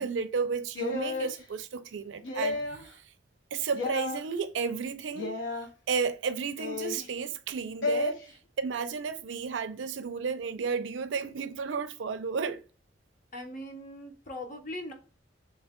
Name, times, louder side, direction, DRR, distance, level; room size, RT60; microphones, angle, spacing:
voice 1, 0.0-3.0 3.5-5.4 5.9-8.2 8.6-12.6, right 5 dB, 70° right, 0.4 m, -33 dB
sound 1, 0.7-1.3 2.2-2.9 3.7-4.2 5.1-5.7 6.6-7.1 7.8-8.1, left 3 dB, 75° left, 0.9 m, -32 dB
voice 2, 13.3-14.9, left 1 dB, 45° left, 0.8 m, -40 dB
3.1 x 2.2 x 3.5 m
head